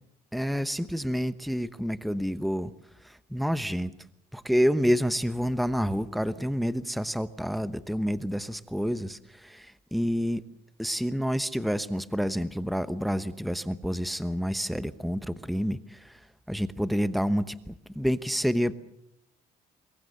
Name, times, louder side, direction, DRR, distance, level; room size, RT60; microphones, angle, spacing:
voice 1, 0.3-2.7 3.0-3.9 4.3-10.4 10.8-16.2 16.5-18.7, equal, ahead, 13 dB, 1.0 m, -28 dB
26.5 x 22.5 x 6.8 m, 0.76 s
cardioid pair, 110°, 17 cm